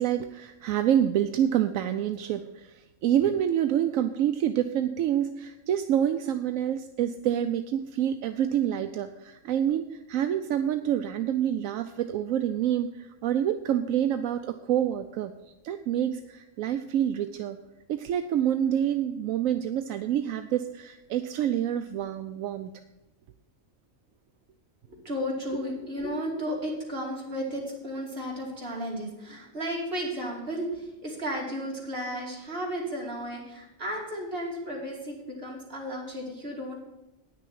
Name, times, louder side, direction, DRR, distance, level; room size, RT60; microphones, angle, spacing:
voice 1, 0.0-15.3 15.6-17.6 17.9-22.7 25.5-25.7, right 10 dB, 80° right, 9 dB, 1.0 m, -27 dB
voice 2, 24.9-36.8, equal, 45° right, -2 dB, 2.9 m, -34 dB
9.5 x 6.4 x 7.7 m, 1.0 s
omnidirectional pair, 1.4 m